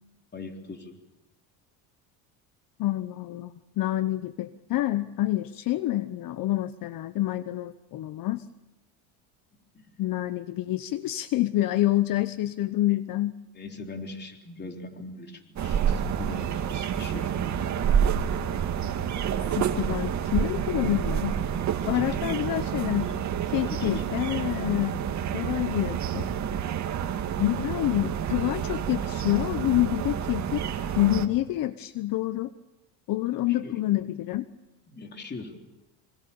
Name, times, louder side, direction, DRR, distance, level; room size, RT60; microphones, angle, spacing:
voice 1, 0.3-0.9 9.7-9.9 13.5-17.4 21.8-22.1 23.7-24.0 33.6-33.8 34.9-35.5, left 3 dB, 25° left, 3 dB, 3.7 m, -40 dB
voice 2, 2.8-8.5 10.0-13.3 19.5-21.3 21.9-23.2 23.5-25.0 25.3-26.3 27.4-30.6 30.9-32.5 33.1-34.5, left 15 dB, 55° left, 13 dB, 0.9 m, -27 dB
sound 1, 15.6-31.3, right 8 dB, 45° right, 2.3 m, -28 dB
26.0 x 26.0 x 7.0 m, 1.0 s
cardioid pair, 115°, 40 cm